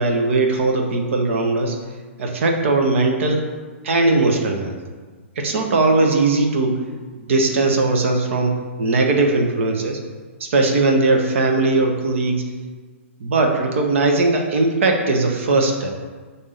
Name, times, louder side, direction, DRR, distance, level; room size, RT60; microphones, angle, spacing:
voice 1, 0.0-1.8 2.2-3.4 3.8-4.8 5.4-6.8 7.2-10.0 10.4-12.4 13.2-15.9, right 3 dB, 65° right, 3 dB, 1.0 m, -19 dB
6.4 x 2.7 x 5.7 m, 1.4 s
hypercardioid pair, 135°, 7 cm